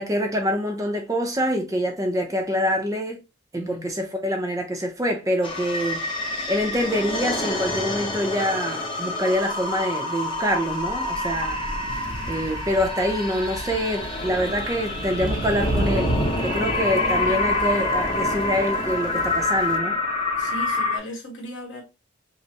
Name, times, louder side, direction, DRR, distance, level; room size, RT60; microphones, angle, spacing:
voice 1, 0.0-3.2 3.5-6.1 6.5-16.1 16.4-20.0, equal, 15° right, 0.5 m, -25 dB
voice 2, 3.6-3.9 16.4-16.6 17.2-17.5 20.4-21.8, equal, 65° left, 1.4 m, -37 dB
sound 1, 5.4-21.0, left 2 dB, 25° left, 0.7 m, -27 dB
sound 2, 11.9-19.8, right 1 dB, 60° right, 0.6 m, -32 dB
5.1 x 2.0 x 2.8 m
head